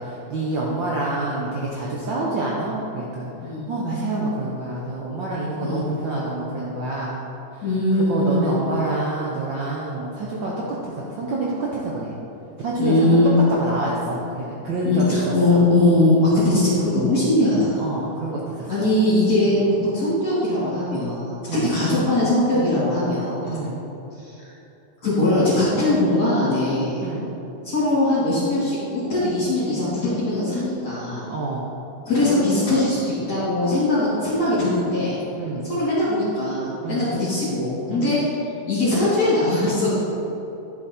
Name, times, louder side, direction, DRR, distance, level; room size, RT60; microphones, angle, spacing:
voice 1, 0.0-3.3 3.7-7.2 7.5-7.6 7.9-10.5 10.8-11.5 11.7-12.1 12.6-13.1 13.5-15.6 17.8-18.9 19.4-19.6 21.5-21.7 23.4-23.8 27.0-27.3 31.3-31.7 35.4-35.7 36.8-37.1 37.9-38.1, right 2 dB, 70° right, -5 dB, 1.1 m, -27 dB
voice 2, 7.6-8.4 12.8-13.3 14.8-17.8 18.7-23.6 24.2-24.5 25.0-27.0 27.6-31.3 32.0-35.2 35.6-38.2 38.7-40.0, left 1 dB, 35° left, -12 dB, 2.7 m, -21 dB
11.5 x 6.3 x 4.3 m, 3.0 s
omnidirectional pair, 3.4 m